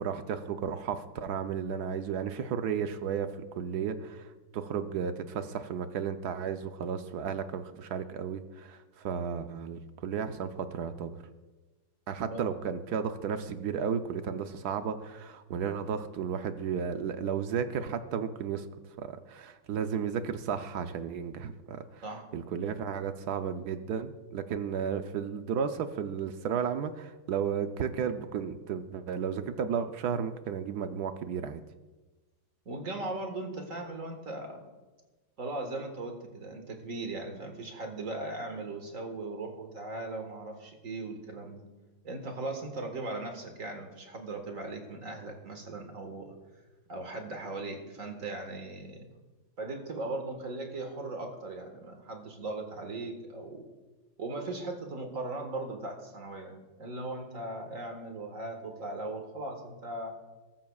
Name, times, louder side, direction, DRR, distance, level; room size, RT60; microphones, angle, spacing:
voice 1, 0.0-11.2 12.1-18.7 19.0-22.0 22.3-31.6, right 7 dB, 65° right, 9 dB, 1.1 m, -33 dB
voice 2, 32.7-34.7 35.4-41.6 42.0-46.3 46.9-49.1 49.6-53.6 54.2-60.2, right 2 dB, 45° right, 4 dB, 1.9 m, -38 dB
21.5 x 13.5 x 2.4 m, 1.2 s
omnidirectional pair, 2.0 m